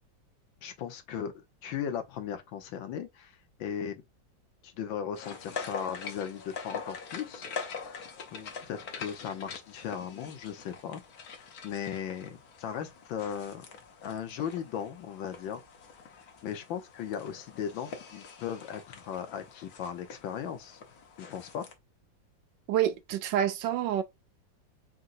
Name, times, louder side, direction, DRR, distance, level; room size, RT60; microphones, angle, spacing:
voice 1, 0.6-3.3 3.6-3.9 4.6-7.5 8.3-13.6 14.0-15.6 16.4-20.8 21.2-21.7, left 8 dB, 85° left, 1.7 m, -37 dB
sound 1, 5.2-21.7, left 5 dB, 60° left, 1.3 m, -44 dB
voice 2, 22.7-24.0, right 11 dB, 75° right, 1.3 m, -27 dB
4.4 x 3.8 x 2.5 m
omnidirectional pair, 2.0 m